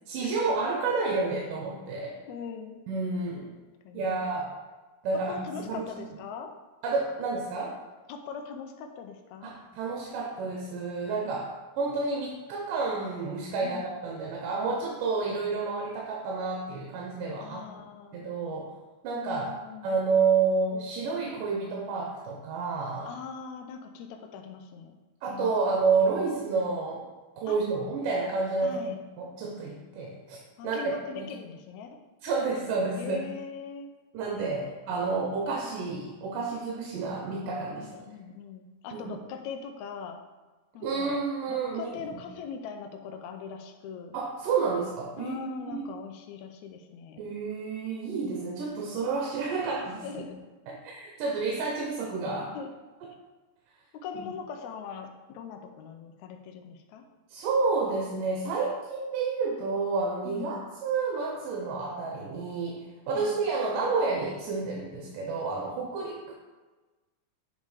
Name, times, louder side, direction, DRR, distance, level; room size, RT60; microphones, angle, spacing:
voice 1, 0.1-2.2 2.9-3.5 3.9-4.5 5.0-5.9 6.8-7.8 9.4-11.5 11.8-17.6 18.1-18.7 19.0-19.5 19.8-23.1 25.2-27.1 27.4-30.4 30.6-31.2 32.2-33.2 34.1-38.0 38.9-39.0 40.8-42.0 44.1-45.9 47.2-50.2 50.7-52.5 54.1-54.2 57.3-66.3, right 4 dB, 75° right, 0 dB, 2.4 m, -30 dB
voice 2, 2.3-2.9 3.8-4.2 5.1-6.6 8.1-9.5 11.2-11.4 13.6-13.9 17.4-18.3 19.1-20.0 23.0-25.0 25.3-25.6 27.5-27.6 28.6-29.0 30.6-32.0 33.0-33.9 34.6-34.9 37.8-40.2 40.7-41.2 41.5-44.1 45.2-47.2 48.2-48.4 50.0-50.4 52.5-52.7 53.9-57.1 60.2-60.7 63.1-63.4, left 6 dB, 85° left, 5 dB, 1.6 m, -41 dB
7.4 x 5.3 x 4.9 m, 1.2 s
omnidirectional pair, 4.2 m